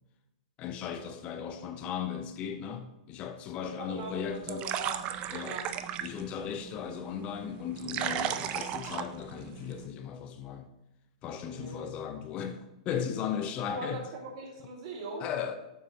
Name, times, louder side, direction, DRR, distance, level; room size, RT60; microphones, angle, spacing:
voice 1, 0.6-4.6 5.3-5.6 6.0-10.7 11.2-14.0 15.2-15.6, left 8 dB, 30° left, 0.5 m, -36 dB
voice 2, 3.7-5.0 5.4-5.7 11.5-11.9 13.6-15.3, right 2 dB, 50° right, 1.9 m, -40 dB
sound 1, 3.9-9.9, right 10 dB, 30° right, 0.4 m, -37 dB
7.1 x 5.9 x 2.7 m
hypercardioid pair, 140°, 4 cm